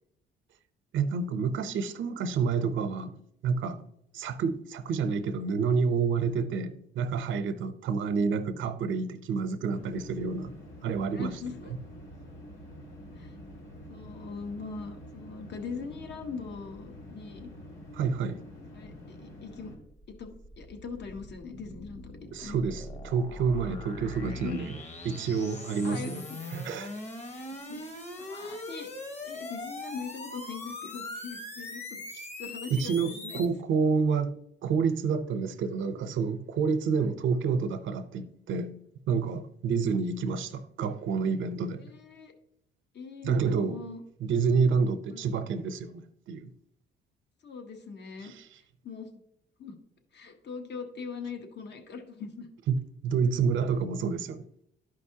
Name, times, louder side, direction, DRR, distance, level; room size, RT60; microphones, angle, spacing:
voice 1, 0.9-3.8 4.1-10.5 10.8-11.4 17.9-18.4 22.3-24.8 25.0-26.2 26.5-27.0 32.7-34.3 34.6-38.8 39.1-41.8 43.2-43.8 44.2-46.5 48.2-48.6 52.7-54.4, right 5 dB, 75° right, 0.8 m, -29 dB
sound 1, 9.7-19.8, left 1 dB, 75° left, 2.8 m, -47 dB
voice 2, 11.1-11.7 13.2-13.3 13.9-17.5 18.7-19.7 20.1-22.1 22.4-22.6 24.1-24.6 25.8-26.4 27.3-27.4 27.7-27.9 28.2-33.4 37.0-37.1 41.8-42.3 42.9-44.0 45.1-45.4 47.4-48.3 48.8-49.1 49.6-49.8 50.1-52.5, left 5 dB, 60° left, 1.2 m, -41 dB
sound 2, 19.5-33.5, left 2 dB, 35° left, 1.3 m, -41 dB
12.0 x 5.2 x 2.8 m
cardioid pair, 90°, 20 cm